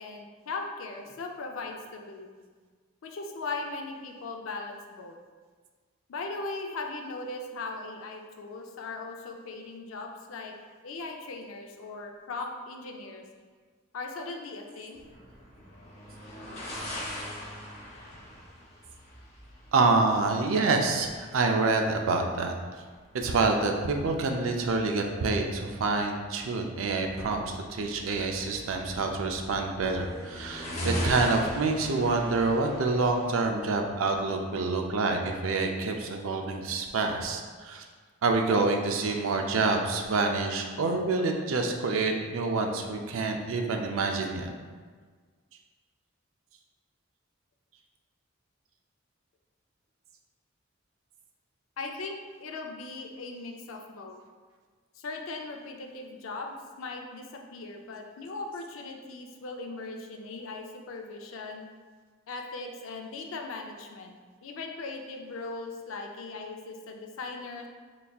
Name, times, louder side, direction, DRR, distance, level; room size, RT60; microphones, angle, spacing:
voice 1, 0.0-2.5 3.0-5.2 6.1-10.5 10.8-13.2 13.9-15.0 51.8-54.2 55.0-61.6 62.3-67.7, left 3 dB, 85° left, 3 dB, 0.5 m, -39 dB
sound 1, 14.9-34.7, equal, 35° left, 0.9 m, -41 dB
voice 2, 19.7-22.6 23.1-37.8 38.2-44.5, right 3 dB, 85° right, 3 dB, 0.4 m, -27 dB
4.0 x 3.3 x 2.3 m, 1.5 s
head